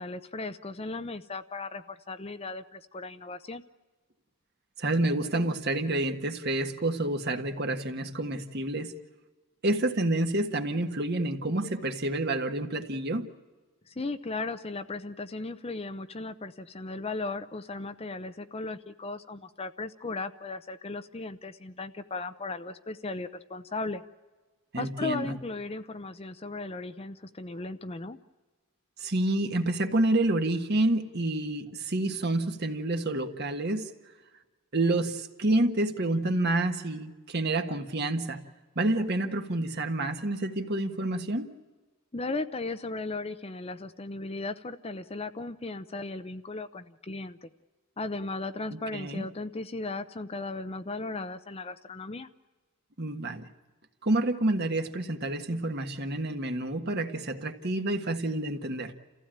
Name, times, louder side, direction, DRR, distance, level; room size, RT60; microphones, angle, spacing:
voice 1, 0.0-3.6 13.9-24.0 24.8-28.2 42.1-47.5 48.0-52.3, left 3 dB, 25° left, 0.7 m, -36 dB
voice 2, 4.8-8.9 9.6-13.3 24.7-25.3 29.0-33.9 34.7-38.4 38.7-41.5 48.7-49.2 53.0-53.5 54.0-58.9, right 2 dB, 50° right, 1.5 m, -28 dB
29.5 x 15.5 x 8.9 m
head